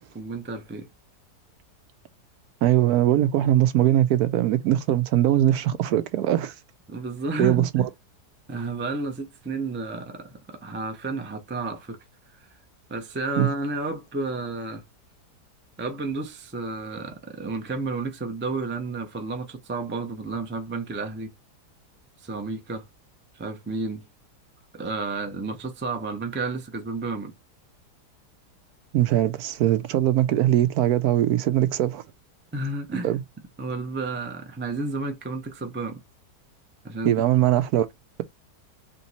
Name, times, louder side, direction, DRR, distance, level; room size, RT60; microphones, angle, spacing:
voice 1, 0.1-0.9 6.9-7.8 8.5-12.0 12.4-12.5 12.9-14.8 15.8-21.3 22.2-22.9 23.3-24.0 24.7-27.3 32.5-33.1 33.6-36.0 36.8-37.2, right 3 dB, 15° right, 0.4 m, -31 dB
voice 2, 2.6-6.5 7.4-7.9 13.4-13.5 28.9-32.0 33.0-33.2 37.0-37.9, right 12 dB, 75° right, 1.0 m, -21 dB
3.5 x 2.9 x 4.1 m
omnidirectional pair, 1.7 m